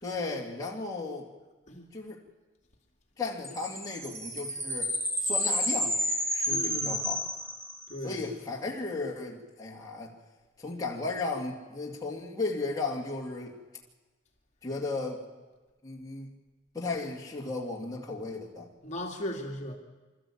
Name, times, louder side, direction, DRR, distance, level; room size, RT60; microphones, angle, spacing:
voice 1, 0.0-1.3 1.9-2.2 3.2-4.9 5.2-6.0 6.3-7.2 8.0-10.1 10.6-13.6 14.6-15.2 15.8-16.3 16.7-18.7, left 3 dB, 20° left, -3 dB, 2.4 m, -35 dB
sound 1, 3.4-8.1, equal, 15° right, 2.3 m, -31 dB
voice 2, 6.5-7.0 7.9-8.2 18.8-19.8, equal, 35° left, 1 dB, 2.6 m, -37 dB
26.5 x 13.5 x 8.6 m, 1.2 s
head